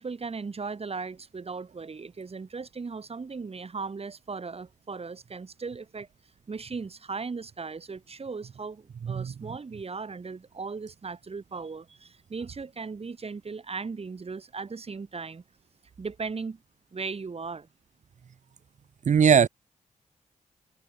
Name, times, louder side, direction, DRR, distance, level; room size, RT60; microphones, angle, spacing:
voice 1, 0.0-6.1 6.5-15.4 16.0-16.6 16.9-17.7, right 4 dB, 50° right, 4.4 m, -37 dB
voice 2, 19.0-19.5, right 7 dB, 70° right, 1.6 m, -19 dB
cardioid pair, 50°, 13 cm